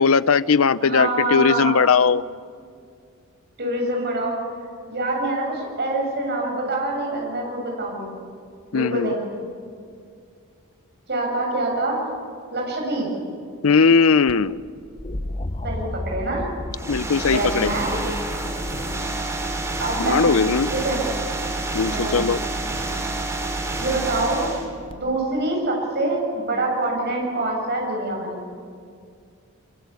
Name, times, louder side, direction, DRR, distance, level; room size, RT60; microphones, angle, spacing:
voice 1, 0.0-2.2 8.7-9.1 13.6-14.6 16.9-17.7 20.0-20.7 21.7-22.4, left 5 dB, 70° left, 17 dB, 0.6 m, -18 dB
voice 2, 0.8-1.8 3.6-4.4 4.9-8.1 8.7-9.2 11.1-12.1 12.5-13.1 15.6-16.4 17.3-18.0 19.8-21.0 21.9-22.2 23.8-24.5 24.9-28.3, right 2 dB, 50° right, 0 dB, 7.6 m, -25 dB
sound 1, 14.3-20.2 21.8-22.3 24.9-25.0, left 1 dB, 25° left, 0.8 m, -34 dB
sound 2, 16.7-24.7, right 2 dB, 15° right, 3.6 m, -28 dB
25.0 x 23.0 x 8.5 m, 2.3 s
head